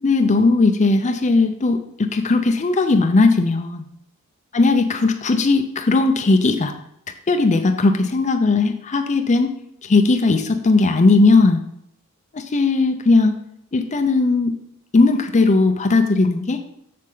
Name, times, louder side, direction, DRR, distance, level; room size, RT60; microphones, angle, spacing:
voice 1, 0.0-3.9 4.5-6.7 7.3-9.5 9.8-11.6 12.3-13.4 13.7-14.5 14.9-16.6, left 3 dB, 35° left, 7 dB, 0.5 m, -17 dB
7.4 x 6.6 x 3.8 m, 0.75 s
head